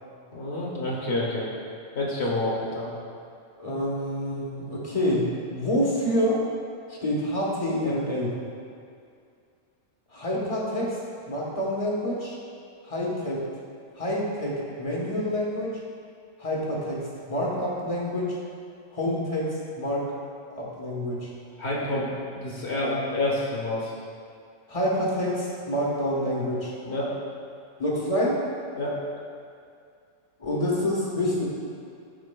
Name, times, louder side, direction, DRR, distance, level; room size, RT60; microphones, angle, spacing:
voice 1, 0.3-1.5 1.9-2.9 21.6-23.9 26.8-27.2 28.8-29.0, left 1 dB, 55° left, -5 dB, 1.5 m, -28 dB
voice 2, 3.6-6.4 6.9-8.3 10.1-11.0 11.3-12.4 12.8-13.4 14.0-15.8 16.4-18.4 18.9-20.1 20.6-21.3 24.7-26.7 27.8-28.4 30.4-31.4, equal, 25° left, -4 dB, 1.1 m, -27 dB
13.0 x 4.4 x 2.2 m, 2.4 s
omnidirectional pair, 1.4 m